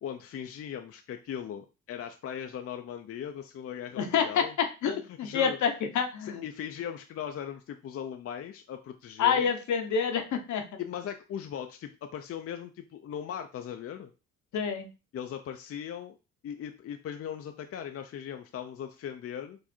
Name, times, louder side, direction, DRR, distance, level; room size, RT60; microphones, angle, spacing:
voice 1, 0.0-4.5 4.9-5.6 6.2-9.4 10.8-14.1 15.1-16.2 16.4-19.6, left 9 dB, 50° left, 6 dB, 0.5 m, -39 dB
voice 2, 4.0-6.4 9.2-10.6 14.5-14.9, left 7 dB, 70° left, 6 dB, 1.0 m, -28 dB
4.7 x 2.6 x 4.3 m, 0.31 s
cardioid pair, 90°, 30 cm